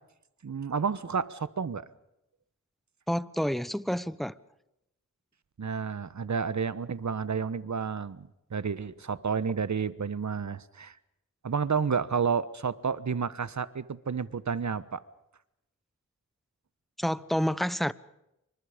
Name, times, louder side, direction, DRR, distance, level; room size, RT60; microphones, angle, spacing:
voice 1, 0.4-1.8 5.6-10.9 11.4-15.0, right 6 dB, 65° right, 1.3 m, -30 dB
voice 2, 3.1-4.3 17.0-17.9, equal, ahead, 1.0 m, -29 dB
28.5 x 24.5 x 5.2 m
wide cardioid pair, 55°, 31 cm